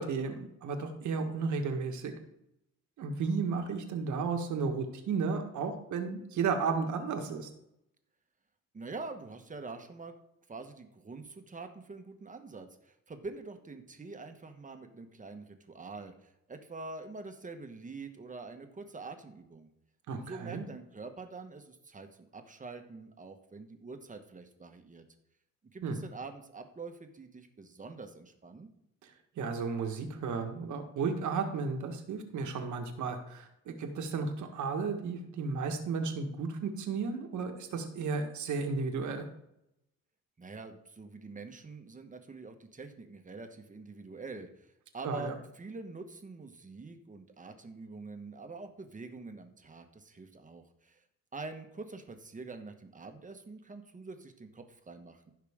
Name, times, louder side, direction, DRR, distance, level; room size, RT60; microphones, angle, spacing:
voice 1, 0.0-2.1 3.0-7.5 20.1-20.6 25.8-26.0 29.0-29.1 29.4-39.2 45.0-45.3, right 5 dB, 75° right, 5 dB, 1.7 m, -33 dB
voice 2, 8.7-10.1 10.5-19.7 20.2-25.0 25.7-28.7 40.4-51.0 51.3-55.3, right 3 dB, 25° right, 6 dB, 1.4 m, -45 dB
15.5 x 5.8 x 3.7 m, 0.82 s
cardioid pair, 90°, 30 cm